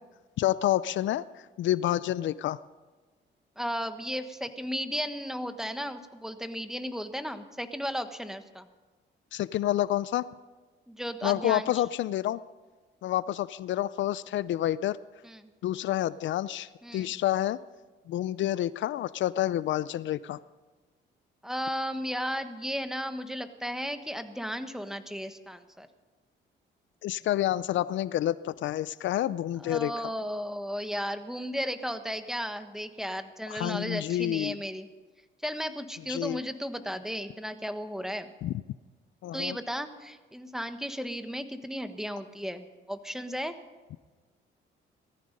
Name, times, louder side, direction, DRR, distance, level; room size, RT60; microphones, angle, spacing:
voice 1, 0.4-1.2 1.6-2.6 9.3-10.3 11.2-12.4 13.0-15.0 15.6-17.6 18.1-20.4 27.0-30.1 33.5-34.6 36.1-36.4 38.4-38.6 39.2-39.6, left 13 dB, 70° left, 17 dB, 0.5 m, -28 dB
voice 2, 3.6-8.7 10.9-11.7 15.2-15.5 16.8-17.1 21.4-25.9 29.6-34.9 35.4-38.3 39.3-43.6, equal, ahead, 9 dB, 1.3 m, -35 dB
18.0 x 14.0 x 5.3 m, 1.3 s
cardioid pair, 90°, 20 cm